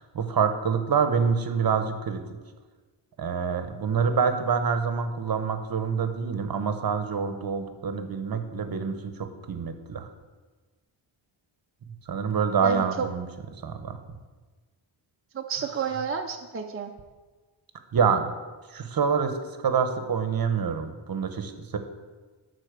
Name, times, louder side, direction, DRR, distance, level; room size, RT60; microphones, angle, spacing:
voice 1, 0.0-2.2 3.2-10.1 12.1-13.3 13.6-14.0 17.9-18.3 18.7-19.4 19.6-21.8, right 6 dB, 45° right, 8 dB, 0.8 m, -26 dB
voice 2, 12.6-13.1 15.3-16.9, right 6 dB, 30° right, 3 dB, 0.4 m, -30 dB
11.5 x 4.1 x 6.6 m, 1.3 s
wide cardioid pair, 170°, 50 cm